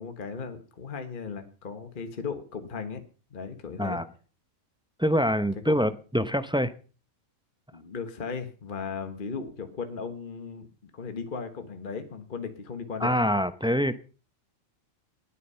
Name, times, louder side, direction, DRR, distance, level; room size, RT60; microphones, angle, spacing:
voice 1, 0.0-3.0 3.3-4.0 5.7-5.8 7.7-13.1 13.7-13.8, left 5 dB, 40° left, 1.4 m, -36 dB
voice 2, 5.0-6.7 13.0-14.0, equal, 10° right, 0.3 m, -25 dB
20.0 x 8.4 x 5.6 m
omnidirectional pair, 1.4 m